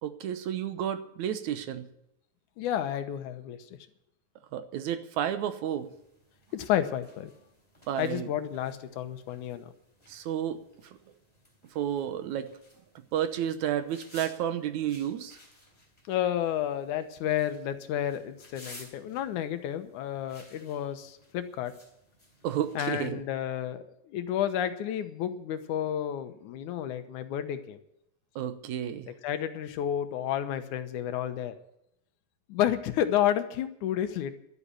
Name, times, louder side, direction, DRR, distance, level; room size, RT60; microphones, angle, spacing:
voice 1, 0.0-1.9 4.5-5.9 7.9-8.3 10.1-10.6 11.8-12.5 13.1-15.4 22.4-23.2 28.4-29.1, right 10 dB, 80° right, 10 dB, 2.3 m, -31 dB
voice 2, 2.6-3.6 6.5-7.3 8.0-9.7 16.1-21.7 22.8-27.8 29.2-31.5 32.5-34.4, left 10 dB, 90° left, 9 dB, 2.5 m, -31 dB
sound 1, 5.8-23.1, left 1 dB, 10° left, 3.3 m, -56 dB
12.5 x 8.2 x 9.9 m, 0.79 s
omnidirectional pair, 3.4 m